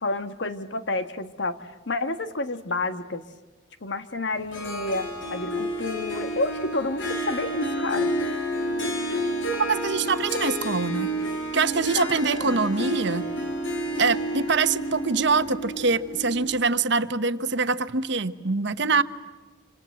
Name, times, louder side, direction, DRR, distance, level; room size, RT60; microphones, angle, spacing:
voice 1, 0.0-3.2 3.8-8.1 11.7-12.6, left 2 dB, 65° left, 10 dB, 1.5 m, -30 dB
Harp, 4.5-16.7, equal, 80° left, 5.2 m, -30 dB
voice 2, 9.7-11.1 11.5-13.3 14.0-19.0, right 4 dB, 65° right, 12 dB, 1.1 m, -24 dB
27.0 x 27.0 x 7.7 m, 1.3 s
head